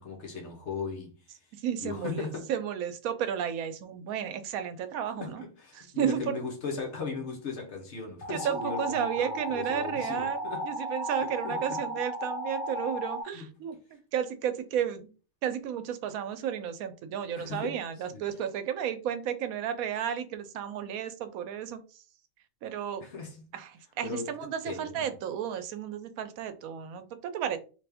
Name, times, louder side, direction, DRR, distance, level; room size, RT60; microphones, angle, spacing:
voice 1, 0.0-1.3 1.8-2.5 5.2-10.6 11.2-11.8 13.3-13.5 17.4-17.8 18.1-18.2 23.0-23.5 24.0-24.3 24.7-25.1, left 4 dB, 60° left, 1.0 m, -38 dB
voice 2, 1.5-5.4 5.7-6.3 8.3-10.4 10.6-15.1 15.4-22.0 22.6-23.0 23.5-27.6, right 9 dB, 85° right, 1.0 m, -33 dB
sound 1, 8.2-13.2, equal, 25° left, 0.4 m, -35 dB
3.4 x 2.6 x 3.4 m
omnidirectional pair, 1.4 m